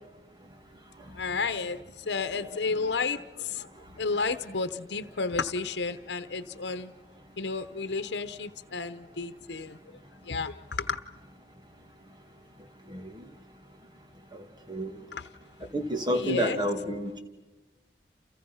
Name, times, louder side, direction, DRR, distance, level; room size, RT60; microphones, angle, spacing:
voice 1, 1.1-1.8 2.1-3.7 4.0-6.9 7.4-10.0 10.2-11.0 15.1-15.3 16.1-16.6, left 4 dB, 90° left, 11 dB, 1.0 m, -32 dB
voice 2, 12.9-13.2 14.3-14.9 15.7-17.2, equal, 25° right, 5 dB, 2.3 m, -30 dB
29.5 x 29.0 x 5.7 m, 1.1 s
head